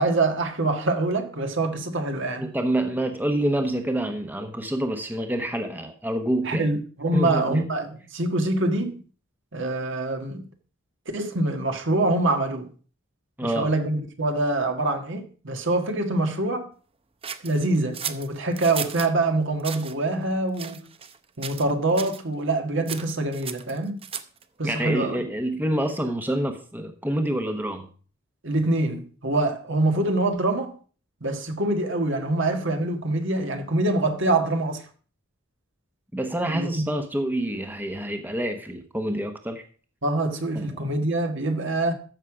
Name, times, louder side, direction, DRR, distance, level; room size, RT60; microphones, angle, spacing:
voice 1, 0.0-2.5 6.4-9.0 9.5-10.4 11.1-12.7 13.4-16.7 17.4-20.8 21.4-24.0 24.6-25.2 28.4-30.7 31.2-34.8 36.5-36.8 40.0-41.9, right 2 dB, 60° right, 1.6 m, -25 dB
voice 2, 2.4-6.7 7.1-7.6 13.4-13.7 24.6-27.9 36.1-39.6 40.5-40.9, right 1 dB, 10° right, 1.0 m, -27 dB
sound 1, 17.2-19.1 19.6-19.9 20.5-21.2 21.4-21.7 22.0-22.2 22.9-24.4, right 8 dB, 30° right, 0.7 m, -35 dB
13.5 x 6.6 x 4.9 m
head